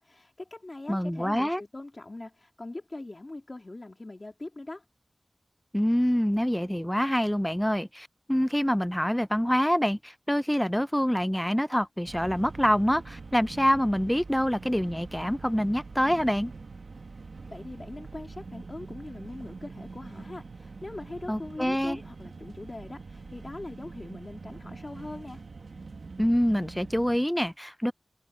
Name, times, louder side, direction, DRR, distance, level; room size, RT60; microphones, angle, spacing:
voice 1, 0.0-4.9 17.5-25.4, left 2 dB, 40° left, 2.5 m, -41 dB
voice 2, 0.9-1.6 5.7-16.5 21.3-22.0 26.2-27.9, equal, 5° left, 0.6 m, -26 dB
sound 1, 12.0-27.2, right 4 dB, 85° right, 1.8 m, -44 dB
wide cardioid pair, 75°, 0 cm